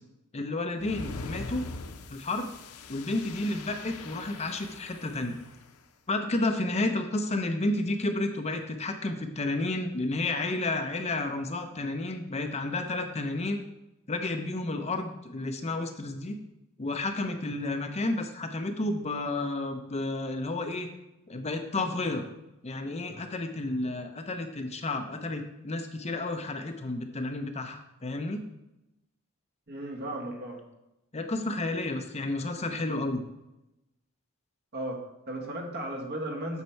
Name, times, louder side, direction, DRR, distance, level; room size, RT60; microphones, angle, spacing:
voice 1, 0.3-1.6 2.1-2.5 2.9-5.3 6.1-13.6 14.1-16.4 16.8-20.9 21.3-22.2 22.6-28.4 31.1-33.2, left 2 dB, 30° left, 6 dB, 0.7 m, -31 dB
sound 1, 0.8-5.7, left 3 dB, 85° left, 0.7 m, -42 dB
voice 2, 29.7-30.6 34.7-36.6, right 1 dB, 50° right, 2 dB, 1.6 m, -35 dB
8.2 x 6.7 x 4.5 m, 0.93 s
head